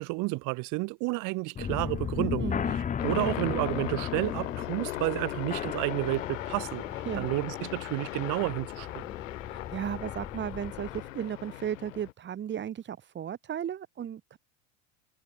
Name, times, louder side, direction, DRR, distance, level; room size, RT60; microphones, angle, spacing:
voice 1, 0.0-6.8 7.2-9.1, right 26 dB, 55° right, 1.7 m, -31 dB
sound 1, 1.6-11.1, left 7 dB, 20° left, 1.3 m, -36 dB
voice 2, 2.4-2.8 7.1-7.3 9.5-14.4, right 9 dB, 30° right, 3.7 m, -35 dB
sound 2, 3.0-12.1, left 16 dB, 90° left, 3.5 m, -38 dB
supercardioid pair, 130°, 37 cm